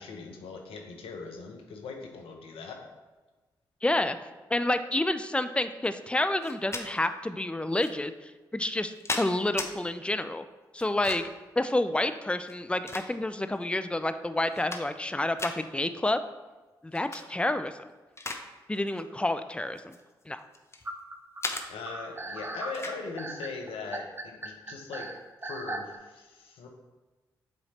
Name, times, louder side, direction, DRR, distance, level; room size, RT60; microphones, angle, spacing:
voice 1, 0.0-2.9 21.7-25.1 25.4-26.7, left 4 dB, 80° left, 2 dB, 0.9 m, -40 dB
voice 2, 3.8-4.2 4.5-10.4 10.7-11.2 11.6-16.2 16.8-17.7 18.7-20.0 20.3-20.4, left 1 dB, 10° left, 10 dB, 0.5 m, -29 dB
sound 1, 6.4-6.9 7.8-7.9 8.6-9.7 10.8-11.4 12.4-13.5 14.0-14.1 14.4-15.1 15.4-15.6 16.9-17.2 17.7-18.5 18.7-19.0 19.8-20.9 21.4-21.7 22.7-23.0, left 2 dB, 30° left, 0.8 m, -36 dB
sound 2, 20.8-26.0, right 2 dB, 25° right, 0.7 m, -38 dB
7.8 x 3.1 x 4.2 m, 1.2 s
supercardioid pair, 40°, 9 cm